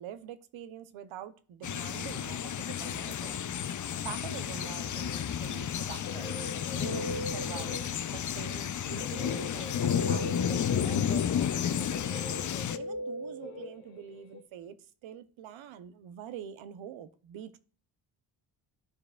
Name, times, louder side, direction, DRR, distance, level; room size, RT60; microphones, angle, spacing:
voice 1, 0.0-3.4 4.0-6.3 6.7-7.9 8.1-12.3 12.7-14.7 15.0-17.6, right 9 dB, 70° right, 0.9 m, -45 dB
sound 1, 1.6-12.8, left 9 dB, 40° left, 0.6 m, -32 dB
Guitar, 5.7-8.2 9.0-14.4, left 1 dB, 90° left, 1.4 m, -41 dB
13.5 x 4.8 x 2.4 m
supercardioid pair, 55°, 49 cm